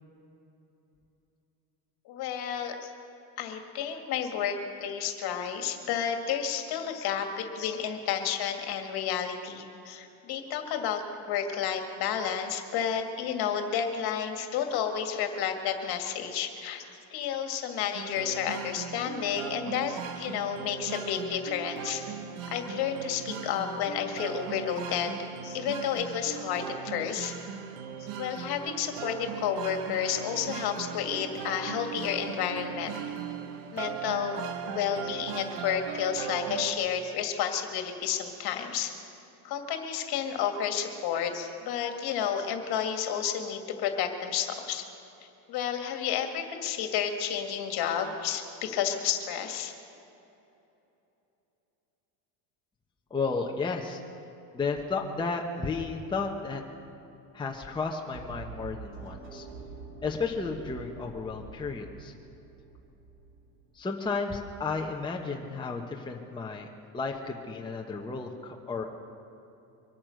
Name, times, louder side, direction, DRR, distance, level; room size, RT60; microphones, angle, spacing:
voice 1, 2.1-2.9 3.4-11.0 11.3-16.8 17.1-22.0 22.5-25.1 25.4-27.3 28.2-33.0 33.7-38.9 39.4-44.9 45.5-49.7, left 8 dB, 55° left, 5 dB, 1.9 m, -31 dB
sound 1, 17.9-36.7, right 8 dB, 70° right, 1.3 m, -38 dB
voice 2, 53.1-54.0 54.5-56.6 57.3-59.5 60.0-62.1 63.7-66.7 66.9-68.8, left 4 dB, 10° left, 0 dB, 1.0 m, -33 dB
sound 2, 58.1-64.1, right 4 dB, 25° right, 3.2 m, -46 dB
24.0 x 8.7 x 6.5 m, 2.9 s
supercardioid pair, 120°, 46 cm